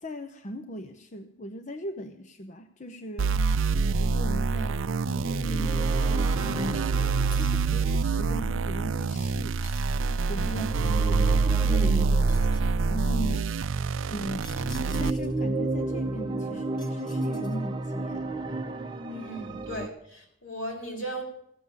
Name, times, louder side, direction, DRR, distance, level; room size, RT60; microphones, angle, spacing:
voice 1, 0.0-3.4 4.0-4.8 5.1-6.9 7.3-9.6 10.3-12.3 12.9-13.6 14.1-14.6 15.0-18.4, equal, 35° left, 8 dB, 0.7 m, -38 dB
sound 1, 3.2-15.1, right 4 dB, 70° right, 0.5 m, -26 dB
sound 2, 5.1-13.6 14.2-19.9, right 2 dB, 25° right, 0.8 m, -33 dB
sound 3, 7.3-7.8 9.6-10.4 12.3-12.8 14.4-15.5 16.8-17.8, left 1 dB, 20° left, 1.2 m, -49 dB
voice 2, 19.1-21.2, right 1 dB, 75° left, 0 dB, 4.6 m, -37 dB
16.0 x 7.2 x 9.9 m, 0.75 s
head